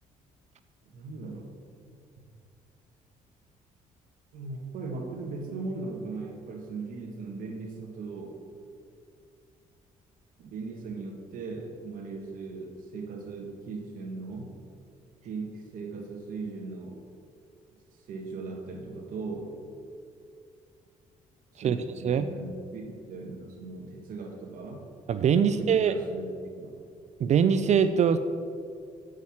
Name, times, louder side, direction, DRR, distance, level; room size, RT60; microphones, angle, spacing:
voice 1, 0.9-1.5 4.3-8.4 10.4-14.5 15.2-17.0 18.1-19.5 21.5-24.9 25.4-26.7, right 3 dB, 70° right, 0 dB, 1.5 m, -38 dB
voice 2, 25.1-25.9 27.2-28.2, right 7 dB, 50° right, 11 dB, 0.5 m, -22 dB
8.2 x 6.5 x 7.1 m, 2.4 s
cardioid pair, 90°, 14 cm